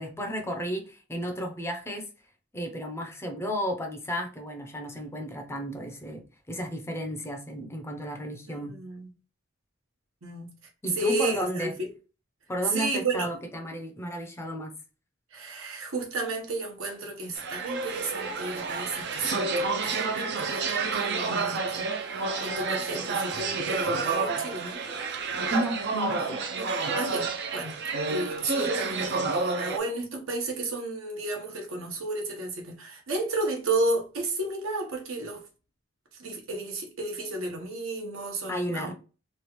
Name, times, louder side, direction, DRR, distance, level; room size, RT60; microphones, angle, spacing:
voice 1, 0.0-2.1 2.5-8.8 10.8-11.7 12.5-14.7 25.5-26.4 38.5-38.9, equal, 15° left, 0.5 m, -33 dB
voice 2, 8.5-9.1 10.2-10.5 11.0-11.7 12.7-13.3 15.3-24.8 26.6-35.4 36.2-38.9, right 2 dB, 80° right, 0.9 m, -32 dB
sound 1, 17.4-29.8, right 4 dB, 55° right, 0.5 m, -29 dB
3.1 x 2.4 x 2.9 m
head